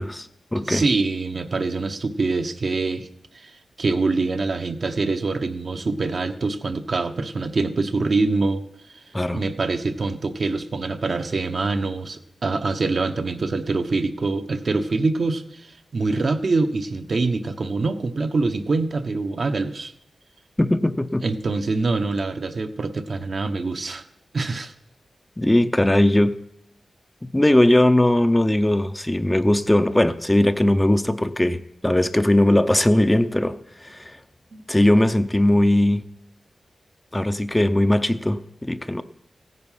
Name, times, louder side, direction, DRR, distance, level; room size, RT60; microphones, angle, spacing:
voice 1, 0.0-0.8 9.1-9.4 20.6-21.2 25.4-26.3 27.3-34.2 34.7-36.0 37.1-39.0, left 1 dB, 15° left, 0.6 m, -19 dB
voice 2, 0.6-3.1 3.3-8.6 8.9-9.0 9.3-19.9 21.2-24.0 24.3-24.7 34.5-34.6, right 3 dB, 55° right, 1.0 m, -25 dB
16.0 x 9.5 x 5.7 m
wide cardioid pair, 90°, 0 cm